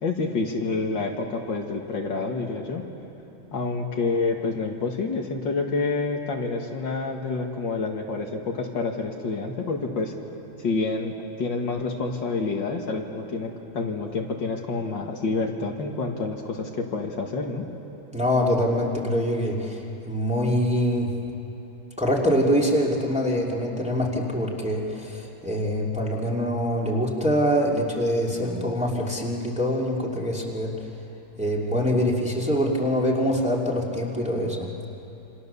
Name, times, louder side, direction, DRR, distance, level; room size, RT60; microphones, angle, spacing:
voice 1, 0.0-2.8 3.5-10.1 10.6-17.6, left 3 dB, 60° left, 1 dB, 2.4 m, -28 dB
voice 2, 18.1-21.1 22.0-30.8 31.4-34.7, equal, 5° right, -2 dB, 2.6 m, -24 dB
28.0 x 27.0 x 6.9 m, 3.0 s
omnidirectional pair, 2.3 m